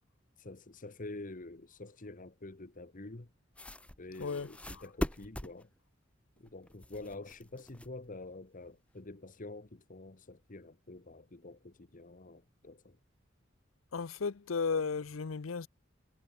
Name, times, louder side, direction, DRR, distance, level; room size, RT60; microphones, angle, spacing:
voice 1, 0.4-3.3 4.0-5.7 6.4-13.0, left 2 dB, 45° left, 1.3 m, -47 dB
sound 1, 3.5-5.6 6.4-8.2, equal, 5° left, 0.9 m, -41 dB
voice 2, 13.9-15.7, left 5 dB, 90° left, 0.7 m, -34 dB
head